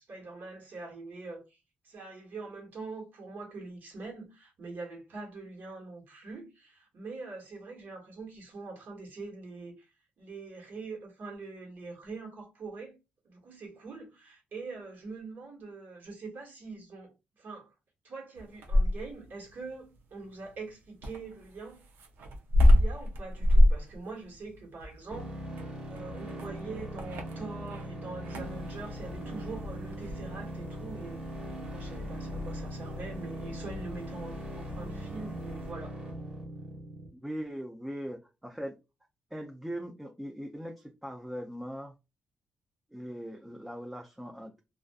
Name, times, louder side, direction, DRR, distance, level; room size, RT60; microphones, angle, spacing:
voice 1, 0.1-1.6 1.8-13.0 13.2-17.1 17.4-17.7 18.0-21.8 22.6-25.4 25.9-31.2 31.6-36.0, right 3 dB, 65° right, 1.4 m, -43 dB
sound 1, 18.4-19.3 21.0-27.9 28.2-28.6 29.9-30.2, left 1 dB, 90° right, 0.5 m, -25 dB
sound 2, 25.1-37.1, right 1 dB, 30° right, 1.1 m, -40 dB
sound 3, 28.4-35.7, left 4 dB, 75° left, 0.4 m, -46 dB
voice 2, 37.1-38.8 39.3-42.0 42.9-44.5, equal, 5° right, 0.4 m, -40 dB
2.4 x 2.4 x 2.2 m
cardioid pair, 95°, 3 cm